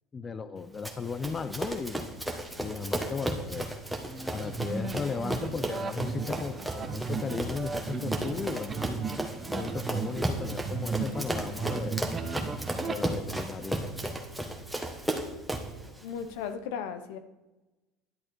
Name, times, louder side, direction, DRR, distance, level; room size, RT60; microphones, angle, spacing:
voice 1, 0.1-2.1 2.6-3.7 4.3-8.7 9.5-12.1 12.8-14.1, left 5 dB, 30° left, 12 dB, 0.6 m, -36 dB
Run, 0.8-15.8, right 1 dB, 5° right, 1.5 m, -34 dB
sound 1, 4.0-13.0, right 5 dB, 25° right, 1.0 m, -35 dB
voice 2, 15.8-17.2, left 7 dB, 80° left, 9 dB, 0.9 m, -36 dB
11.0 x 7.7 x 4.5 m, 1.0 s
supercardioid pair, 105°, 0 cm